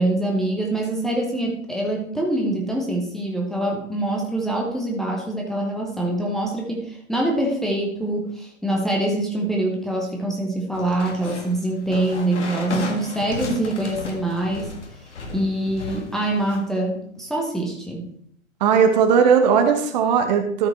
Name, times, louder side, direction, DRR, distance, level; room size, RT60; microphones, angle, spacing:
voice 1, 0.0-14.7 15.3-18.1, right 1 dB, ahead, -1 dB, 1.0 m, -24 dB
sound 1, 10.7-16.6, left 3 dB, 60° left, 1.9 m, -34 dB
voice 2, 18.6-20.7, right 6 dB, 35° right, 6 dB, 1.0 m, -17 dB
13.0 x 5.1 x 4.3 m, 0.66 s
figure-of-eight pair, 115°, 39 cm